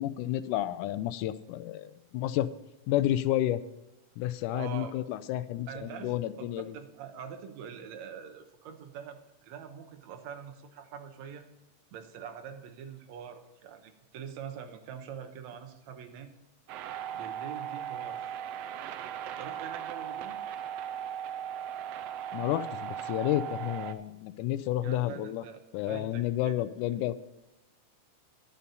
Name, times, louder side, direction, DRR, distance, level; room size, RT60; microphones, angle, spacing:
voice 1, 0.0-2.5 2.9-3.6 4.2-6.8 22.3-25.4 25.7-27.2, left 13 dB, 85° left, 13 dB, 2.1 m, -31 dB
voice 2, 4.5-4.9 5.7-11.5 11.9-16.3 17.1-18.4 19.4-20.4 24.8-26.5, right 8 dB, 70° right, 6 dB, 2.2 m, -44 dB
sound 1, 16.7-23.9, right 9 dB, 90° right, 1.4 m, -38 dB
10.5 x 8.3 x 5.4 m, 0.97 s
omnidirectional pair, 3.6 m